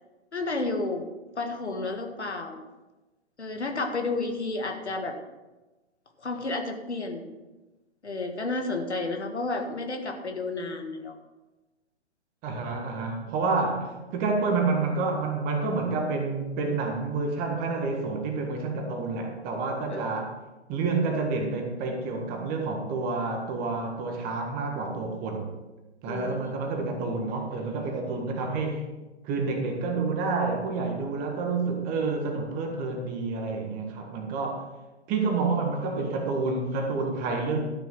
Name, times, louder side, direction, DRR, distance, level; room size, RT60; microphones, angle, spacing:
voice 1, 0.3-1.0 1.4-2.6 3.4-5.2 6.2-7.3 8.0-11.1 13.5-13.6 19.9-20.1 26.1-26.5, left 3 dB, 80° left, 4 dB, 1.8 m, -31 dB
voice 2, 12.4-20.3 20.7-25.5 26.0-28.8 29.2-34.7 35.1-37.6, right 3 dB, 25° right, 3 dB, 1.6 m, -29 dB
12.5 x 6.3 x 5.4 m, 1.1 s
figure-of-eight pair, 120°, 33 cm